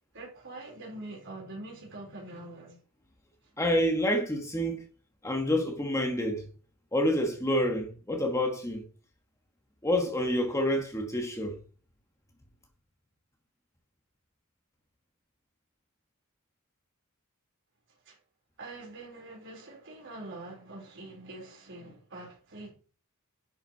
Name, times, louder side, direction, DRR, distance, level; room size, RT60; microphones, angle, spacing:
voice 1, 0.1-2.8 18.1-18.2 18.6-22.7, right 2 dB, 55° right, 4.2 m, -44 dB
voice 2, 3.6-4.8 5.2-6.5 6.9-8.8 9.8-11.6, left 1 dB, 15° left, 1.2 m, -28 dB
10.5 x 5.5 x 4.4 m
head